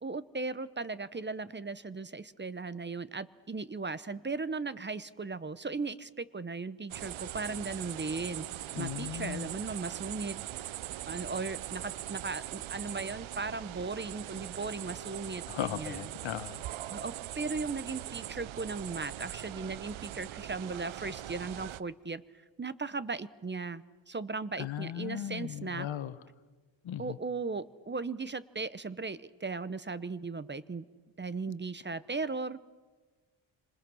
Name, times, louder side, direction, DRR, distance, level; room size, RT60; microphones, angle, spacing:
voice 1, 0.0-8.5 8.8-10.7 11.0-16.1 16.9-22.2 22.6-25.9 27.0-30.8 31.2-32.6, right 4 dB, 25° right, 15 dB, 0.9 m, -37 dB
sound 1, 6.9-21.8, right 13 dB, 80° right, 0.8 m, -41 dB
voice 2, 8.7-9.5 15.5-16.6 24.6-26.1 26.8-27.0, left 11 dB, 75° left, 12 dB, 1.4 m, -37 dB
30.0 x 26.5 x 6.3 m, 1.4 s
cardioid pair, 95°, 47 cm